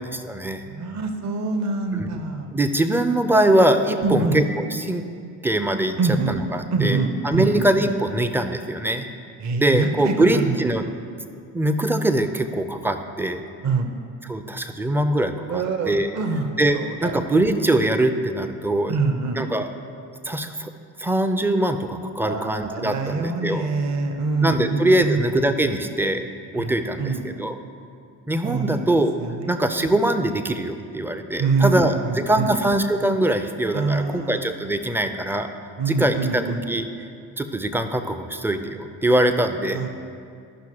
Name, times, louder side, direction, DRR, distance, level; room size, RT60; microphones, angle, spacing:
voice 1, 0.1-0.7 2.0-2.1 2.5-5.0 5.4-5.9 6.3-7.0 7.2-9.1 9.6-10.8 11.5-13.4 14.3-16.1 16.6-18.9 19.4-19.7 20.2-20.7 21.0-23.7 24.4-26.3 26.5-27.6 28.3-29.1 29.5-31.9 32.3-35.5 35.9-36.8 37.4-39.8, right 1 dB, 5° right, 8 dB, 0.4 m, -22 dB
voice 2, 0.7-2.5 4.0-4.4 6.0-6.4 6.7-7.7 9.4-10.6 13.6-13.9 15.5-17.2 18.9-19.4 22.2-25.3 26.6-27.2 28.4-28.9 29.2-29.5 31.4-32.5 33.7-34.4 35.8-36.6 39.7-39.9, right 4 dB, 40° right, 6 dB, 0.8 m, -25 dB
13.0 x 5.8 x 2.9 m, 2.4 s
hypercardioid pair, 55°, 45 cm